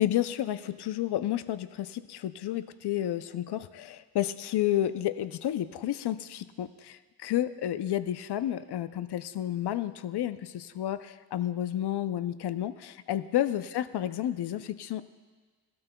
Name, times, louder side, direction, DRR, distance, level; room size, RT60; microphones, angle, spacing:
voice 1, 0.0-15.0, left 12 dB, 80° left, 13 dB, 0.6 m, -31 dB
19.0 x 12.5 x 2.3 m, 1.4 s
cardioid pair, 55°, 39 cm